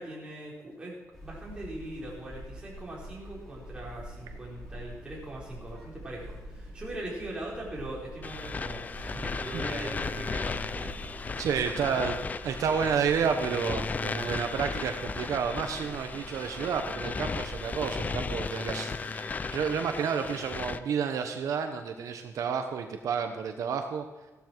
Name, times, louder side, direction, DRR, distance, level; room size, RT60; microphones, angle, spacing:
voice 1, 0.0-11.4, right 1 dB, 15° right, -5 dB, 5.0 m, -41 dB
sound 1, 1.1-18.2, equal, 5° left, 5.7 m, -45 dB
sound 2, 8.2-20.8, left 4 dB, 30° left, 0.5 m, -35 dB
voice 2, 11.4-12.2 12.4-24.0, right 6 dB, 80° right, 6 dB, 1.1 m, -30 dB
16.0 x 12.5 x 4.7 m, 1.1 s
wide cardioid pair, 145°, 6 cm